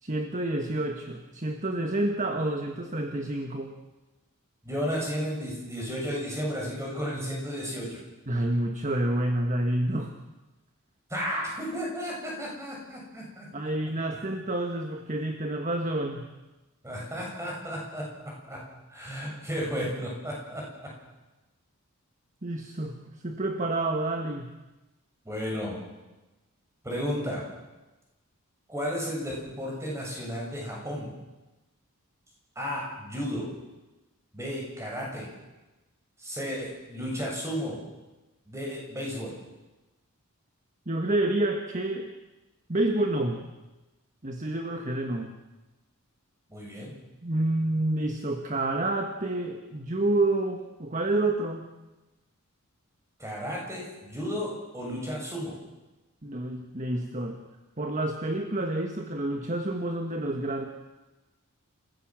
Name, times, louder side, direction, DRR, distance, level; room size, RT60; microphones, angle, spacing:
voice 1, 0.0-3.7 8.3-10.1 13.5-16.2 22.4-23.0 23.2-24.5 40.9-42.1 42.7-43.4 44.2-45.4 47.2-51.7 56.2-57.4 57.8-60.6, right 1 dB, 35° right, 4 dB, 1.5 m, -28 dB
voice 2, 4.6-8.0 11.1-13.5 16.8-20.9 25.2-25.8 26.8-27.4 28.7-31.1 32.6-33.5 34.3-35.3 36.2-37.8 38.5-39.3 46.5-47.0 53.2-55.6, equal, 15° right, -2 dB, 7.1 m, -33 dB
27.5 x 15.5 x 7.5 m, 1.1 s
head